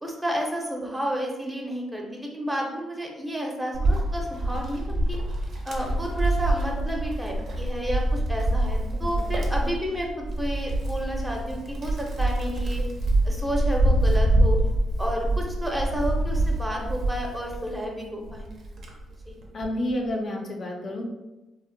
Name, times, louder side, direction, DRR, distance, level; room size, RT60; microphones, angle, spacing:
voice 1, 0.0-5.2 5.6-12.8 13.2-14.6 15.0-18.5 19.3-19.4, equal, 10° right, 0 dB, 0.5 m, -31 dB
Wind, 3.7-17.8 18.3-19.8, right 1 dB, 60° right, 0.5 m, -25 dB
voice 2, 19.5-21.0, left 1 dB, 45° left, 1 dB, 0.4 m, -29 dB
2.7 x 2.0 x 2.5 m, 1.1 s
cardioid pair, 90°, 0 cm